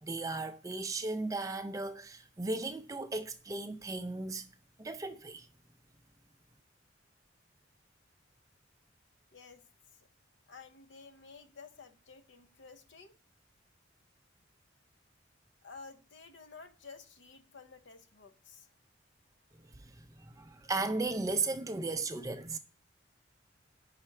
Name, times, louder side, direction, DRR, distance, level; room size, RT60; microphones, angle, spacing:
voice 1, 0.0-4.5 4.8-5.5 19.8-22.6, right 3 dB, 15° right, 0.4 m, -36 dB
voice 2, 9.3-9.6 9.9-10.1 10.5-13.2 15.6-18.7, left 4 dB, 75° left, 0.7 m, -52 dB
5.7 x 4.3 x 5.7 m
head